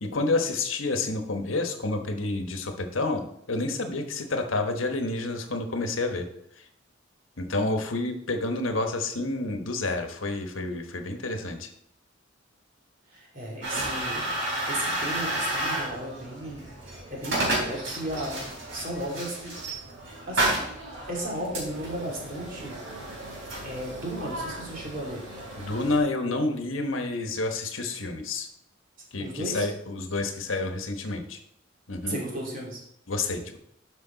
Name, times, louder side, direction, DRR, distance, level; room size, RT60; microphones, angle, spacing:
voice 1, 0.0-6.3 7.4-11.7 25.6-28.5 29.1-31.4 31.9-32.2 33.1-33.6, left 2 dB, 90° left, 5 dB, 1.3 m, -29 dB
voice 2, 13.1-14.4 14.7-19.6 20.3-20.6 21.1-22.8 23.6-25.2 29.2-29.7 32.1-32.8, right 1 dB, 45° right, -2 dB, 3.0 m, -35 dB
sound 1, 13.6-26.0, right 1 dB, 70° right, 4.0 m, -32 dB
12.0 x 5.4 x 4.0 m, 0.72 s
head